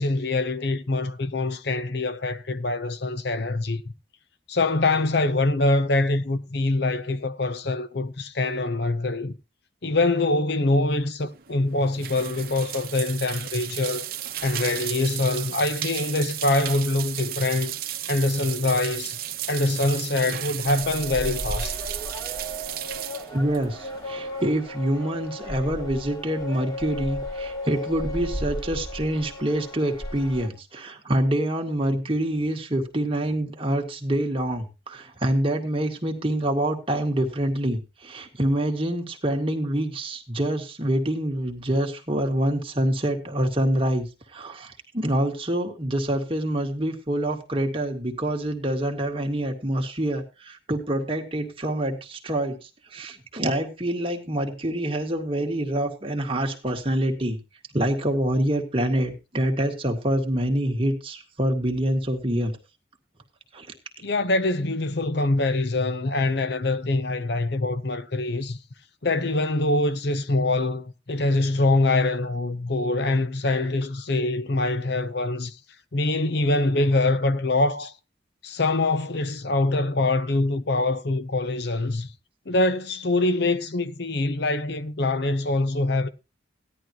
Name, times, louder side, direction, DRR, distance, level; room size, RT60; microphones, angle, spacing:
voice 1, 0.0-3.8 4.5-9.3 9.8-14.1 14.4-17.7 18.1-19.2 19.5-21.8 64.0-68.6 69.0-75.6 75.9-77.9 78.4-82.1 82.5-86.1, left 2 dB, 55° left, 0.8 m, -24 dB
paisaje-sonoro-uem agua ducha, 11.2-24.4, right 12 dB, 50° right, 1.1 m, -34 dB
sound 1, 20.6-30.5, equal, 20° left, 2.5 m, -34 dB
voice 2, 23.3-44.1 44.3-57.4 57.7-62.5 63.5-63.7, right 1 dB, 30° right, 2.0 m, -26 dB
16.5 x 11.0 x 3.0 m
head